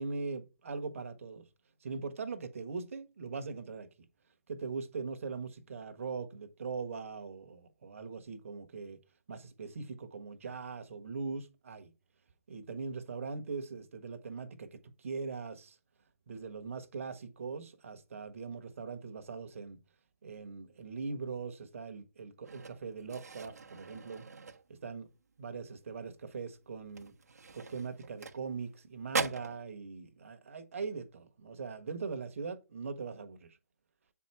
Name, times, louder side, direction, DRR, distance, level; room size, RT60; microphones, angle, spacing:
voice 1, 0.0-1.5 1.8-3.9 4.5-9.0 9.3-11.9 12.5-15.8 16.3-19.8 20.2-24.3 24.7-25.1 25.4-27.1 27.5-33.6, right 4 dB, 55° right, 1.4 m, -41 dB
sound 1, 22.4-25.1 25.4-25.7 26.1-26.2 26.8-28.8 29.1-29.6, right 4 dB, 70° right, 1.1 m, -40 dB
8.0 x 4.8 x 4.3 m
hypercardioid pair, 150°, 9 cm